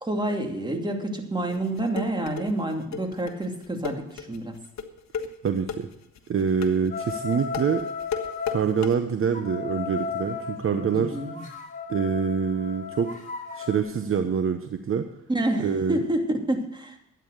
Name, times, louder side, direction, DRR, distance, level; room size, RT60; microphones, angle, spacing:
voice 1, 0.0-4.6 10.9-11.4 15.3-17.0, right 1 dB, 15° right, 3 dB, 2.6 m, -28 dB
sound 1, 1.5-8.9, left 6 dB, 65° left, 1.4 m, -34 dB
voice 2, 5.4-5.9 6.3-7.9 8.5-11.2 11.9-13.2 13.6-15.1 15.6-16.0, right 6 dB, 45° right, 8 dB, 1.0 m, -25 dB
sound 2, 6.9-8.7 9.3-13.8, left 5 dB, 25° left, 3.3 m, -35 dB
12.5 x 9.2 x 6.6 m, 0.85 s
cardioid pair, 90°, 30 cm